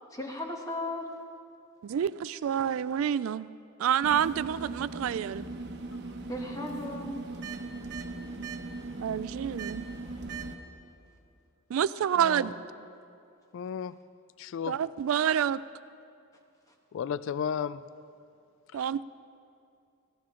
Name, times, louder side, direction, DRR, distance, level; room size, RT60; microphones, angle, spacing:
voice 1, 0.1-1.1 6.3-7.2 12.0-12.5, left 2 dB, 15° left, 1 dB, 1.4 m, -36 dB
voice 2, 1.8-3.5 3.8-5.4 9.0-9.9 11.7-12.5 14.7-15.6 18.7-19.1, right 9 dB, 75° right, 17 dB, 0.3 m, -28 dB
sound 1, 4.0-10.6, right 3 dB, 55° right, 1.0 m, -39 dB
voice 3, 13.5-14.0 14.4-14.8 16.9-17.8 18.7-18.8, left 7 dB, 65° left, 16 dB, 0.3 m, -33 dB
18.0 x 15.0 x 3.8 m, 2.5 s
head